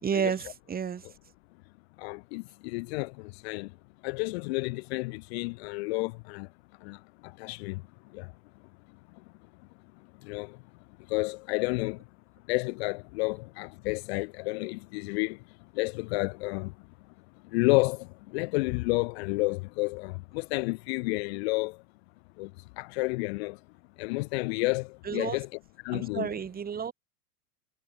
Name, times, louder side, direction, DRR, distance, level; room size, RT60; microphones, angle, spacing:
voice 1, 0.0-1.1 25.0-25.4 25.9-26.9, right 7 dB, 20° right, 3.1 m, -31 dB
voice 2, 2.0-3.7 4.0-6.5 6.8-7.0 7.4-7.8 8.1-8.3 10.3-10.6 11.1-12.0 12.5-15.4 15.8-16.7 17.5-21.8 22.4-22.5 22.8-23.6 24.0-25.5 25.8-26.3, left 27 dB, 40° left, 0.8 m, -30 dB
hypercardioid pair, 100°, 47 cm